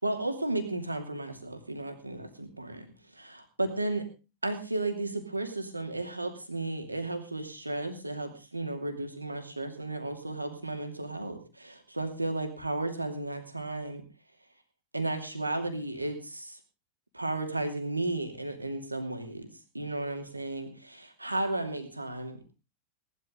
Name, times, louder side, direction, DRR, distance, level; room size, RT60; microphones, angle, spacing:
voice 1, 0.0-4.1 4.4-14.0 14.9-16.6 17.1-22.4, right 2 dB, 85° right, 6 dB, 2.6 m, -34 dB
18.0 x 12.0 x 3.8 m, 0.31 s
figure-of-eight pair, 90°, 0 cm